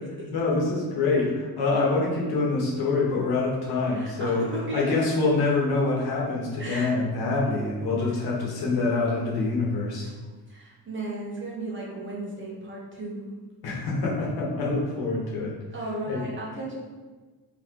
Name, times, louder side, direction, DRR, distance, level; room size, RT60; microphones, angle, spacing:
voice 1, 0.3-4.4 4.7-10.1 13.6-15.5 16.1-16.2, left 3 dB, 70° left, -4 dB, 1.3 m, -25 dB
voice 2, 3.9-5.0 6.6-6.9 7.4-7.6 10.5-13.3 15.7-16.8, right 2 dB, 30° right, -3 dB, 1.0 m, -35 dB
4.2 x 4.1 x 2.9 m, 1.3 s
cardioid pair, 145°, 38 cm